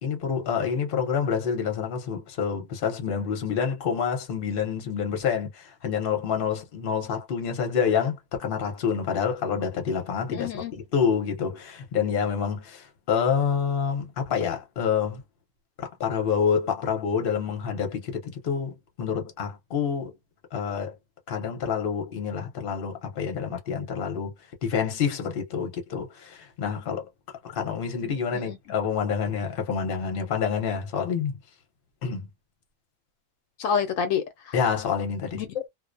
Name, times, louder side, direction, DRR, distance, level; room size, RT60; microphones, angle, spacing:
voice 1, 0.0-15.2 15.8-20.1 20.5-20.9 21.3-24.3 24.6-27.1 27.4-31.4 32.0-32.3 34.5-35.4, left 6 dB, 50° left, 0.9 m, -27 dB
voice 2, 10.3-10.7 28.3-28.6 33.6-34.6 35.3-35.7, left 7 dB, 75° left, 0.9 m, -28 dB
2.3 x 2.1 x 2.5 m
omnidirectional pair, 1.4 m